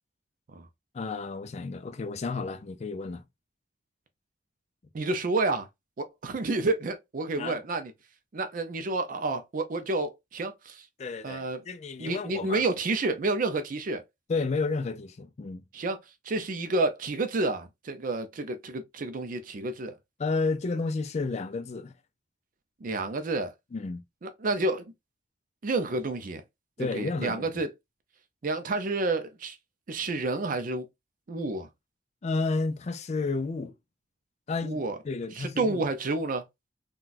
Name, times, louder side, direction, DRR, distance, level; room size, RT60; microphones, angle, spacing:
voice 1, 0.9-3.2 7.4-7.6 11.0-12.6 14.3-15.7 20.2-21.9 23.7-24.0 26.8-27.5 32.2-33.7 34.5-35.8, left 3 dB, 40° left, 0.4 m, -31 dB
voice 2, 4.9-5.7 6.0-7.9 8.3-10.9 11.2-11.6 12.0-14.0 15.7-16.0 16.2-19.9 22.8-23.5 24.2-24.9 25.6-26.4 26.8-27.7 28.4-29.6 29.9-30.9 31.3-31.7 34.6-35.0 35.3-36.4, right 2 dB, 50° right, 0.5 m, -29 dB
3.9 x 2.3 x 2.4 m
head